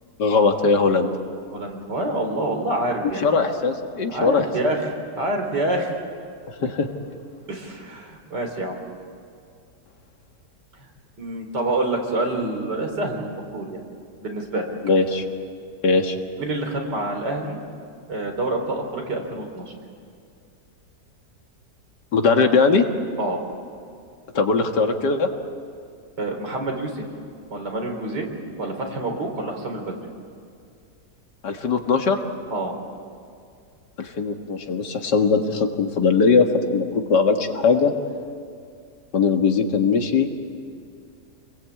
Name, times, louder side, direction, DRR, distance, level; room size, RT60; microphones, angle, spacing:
voice 1, 0.2-1.1 3.2-4.5 6.6-6.9 14.8-15.2 15.8-16.2 22.1-22.9 24.3-25.3 31.4-32.2 34.0-36.5 36.7-37.9 39.1-40.3, left 4 dB, 85° left, 4 dB, 2.4 m, -20 dB
voice 2, 1.5-3.2 4.1-4.9 5.1-6.0 6.6-6.7 7.5-8.8 11.2-13.8 14.2-14.7 16.4-17.6 18.1-19.6 23.2-23.4 26.2-27.0 27.5-28.3 28.6-30.0 32.5-32.7, right 2 dB, 85° right, 3 dB, 4.3 m, -27 dB
29.0 x 21.5 x 8.5 m, 2.4 s
omnidirectional pair, 1.8 m